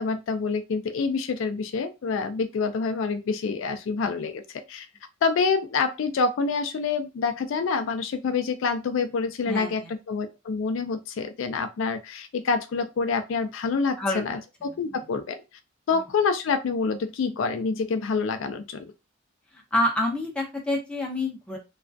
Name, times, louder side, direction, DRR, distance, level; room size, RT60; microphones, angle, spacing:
voice 1, 0.0-4.9 5.2-9.8 10.1-15.4 15.9-18.9, left 4 dB, 70° left, 8 dB, 0.3 m, -27 dB
voice 2, 9.5-9.9 14.0-14.4 14.7-14.8 15.9-16.1 19.5-21.6, left 1 dB, 5° left, -2 dB, 0.6 m, -28 dB
2.4 x 2.1 x 2.4 m, 0.25 s
head